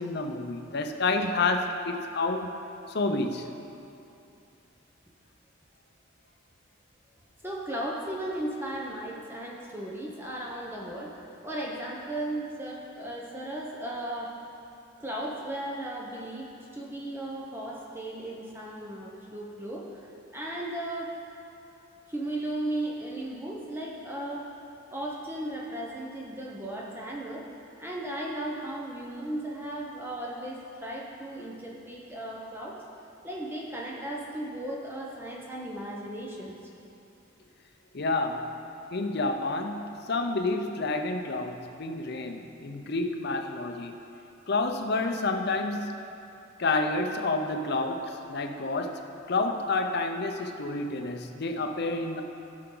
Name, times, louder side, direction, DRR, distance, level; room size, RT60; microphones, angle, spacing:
voice 1, 0.0-2.6 2.9-3.5 37.9-38.5 38.9-43.9 44.5-46.0 46.6-49.0 49.3-52.2, left 3 dB, 55° left, 5 dB, 0.6 m, -29 dB
voice 2, 7.4-14.4 15.0-21.1 22.1-24.5 24.9-27.4 27.8-32.8 33.2-36.7, right 1 dB, 10° right, -3 dB, 0.8 m, -36 dB
16.5 x 5.7 x 3.9 m, 2.8 s
head